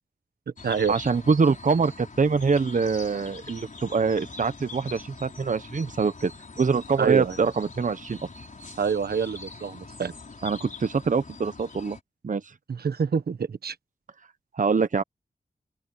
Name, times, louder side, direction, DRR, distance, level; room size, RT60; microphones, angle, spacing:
sound 1, 0.6-12.0, left 3 dB, 55° left, 4.9 m, -43 dB
voice 1, 0.9-6.3 6.6-8.2 10.4-12.0 12.2-12.4 14.5-15.0, right 5 dB, 55° right, 1.0 m, -24 dB
voice 2, 7.0-7.4 8.8-10.1 12.7-13.7, right 6 dB, 85° right, 1.2 m, -26 dB
open air
wide cardioid pair, 65°, 16 cm